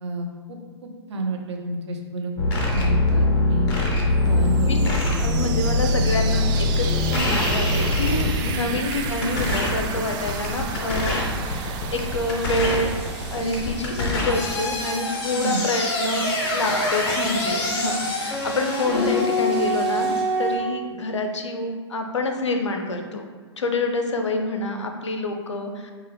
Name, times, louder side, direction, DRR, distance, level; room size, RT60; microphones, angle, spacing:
voice 1, 0.0-2.4 2.7-3.7 4.3-5.3 5.9-6.2 8.6-8.8 15.4-15.6, right 2 dB, 70° right, 3 dB, 0.6 m, -31 dB
sound 1, 2.4-20.6, left 1 dB, 50° left, 0.9 m, -23 dB
sound 2, 4.2-15.9, right 6 dB, 30° right, 0.3 m, -34 dB
voice 2, 4.3-4.8 5.2-12.9 13.3-23.3 23.6-25.9, left 2 dB, 85° left, 4 dB, 0.5 m, -27 dB
Sink (filling or washing), 7.7-10.8 11.6-11.7 11.9-20.2, equal, 5° right, 1.1 m, -42 dB
4.6 x 2.3 x 3.2 m, 1.5 s
figure-of-eight pair, 105°, 15 cm